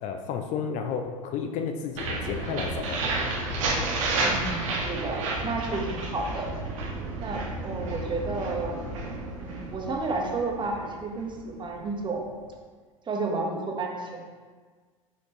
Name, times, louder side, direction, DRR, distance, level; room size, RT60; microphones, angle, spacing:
voice 1, 0.0-3.0, left 6 dB, 45° left, 6 dB, 0.5 m, -32 dB
sound 1, 1.9-11.8, right 2 dB, 65° right, 1.5 m, -31 dB
voice 2, 4.2-6.5 7.2-8.8 9.4-12.3 13.1-14.4, right 3 dB, 25° right, 0 dB, 1.3 m, -31 dB
6.6 x 5.1 x 3.0 m, 1.5 s
hypercardioid pair, 80°, 18 cm